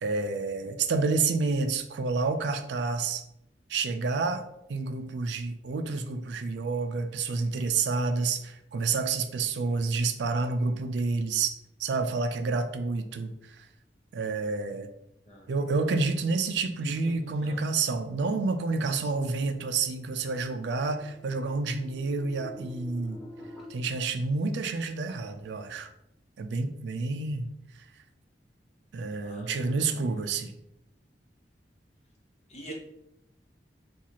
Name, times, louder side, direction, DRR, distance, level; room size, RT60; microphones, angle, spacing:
voice 1, 0.0-3.2 3.7-4.4 4.7-11.5 11.8-13.6 14.1-14.9 15.5-23.2 23.7-25.9 26.4-27.5 28.9-30.5, right 4 dB, 75° right, 8 dB, 0.4 m, -29 dB
voice 2, 16.8-17.1 17.4-17.7 29.1-30.0 32.5-32.7, right 1 dB, 40° left, 0 dB, 0.8 m, -45 dB
sound 1, 19.3-23.6, left 1 dB, ahead, 0.8 m, -48 dB
4.3 x 2.4 x 2.9 m, 0.82 s
head